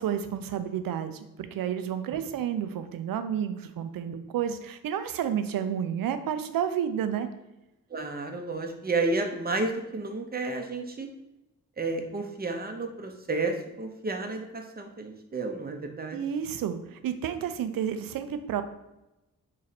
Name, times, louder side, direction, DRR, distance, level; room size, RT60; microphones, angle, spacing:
voice 1, 0.0-7.3 16.1-18.6, right 9 dB, 80° right, 10 dB, 0.5 m, -31 dB
voice 2, 7.9-11.1 11.8-16.2, right 3 dB, 30° right, 4 dB, 0.7 m, -31 dB
3.1 x 2.7 x 4.0 m, 0.95 s
cardioid pair, 55°, 34 cm